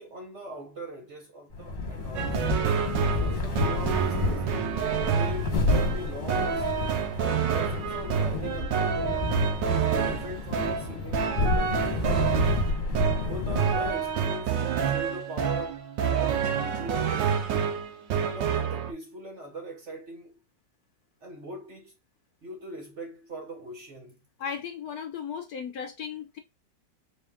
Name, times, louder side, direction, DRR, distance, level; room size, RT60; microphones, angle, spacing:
voice 1, 0.0-2.4 3.2-7.0 7.5-12.1 13.2-17.5 18.2-20.3 21.2-21.9 22.4-24.2, right 1 dB, 50° right, 0.9 m, -41 dB
sound 1, 1.5-14.3, left 3 dB, 50° left, 1.6 m, -30 dB
sound 2, 2.2-18.9, right 7 dB, 80° right, 1.4 m, -28 dB
voice 2, 24.4-26.4, left 7 dB, 65° left, 1.0 m, -36 dB
4.2 x 2.4 x 3.4 m
omnidirectional pair, 1.9 m